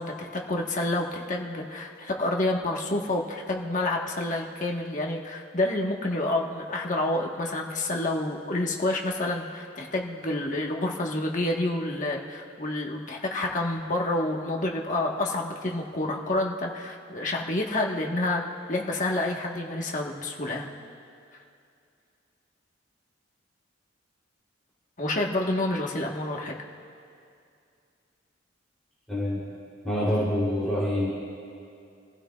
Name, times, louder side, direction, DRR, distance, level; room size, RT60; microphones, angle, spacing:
voice 1, 0.0-18.4 18.7-20.7 25.0-26.5, left 2 dB, 40° left, 0 dB, 1.4 m, -28 dB
voice 2, 29.1-29.4 29.8-31.1, left 1 dB, 5° left, -9 dB, 3.3 m, -26 dB
28.0 x 15.5 x 2.4 m, 2.4 s
head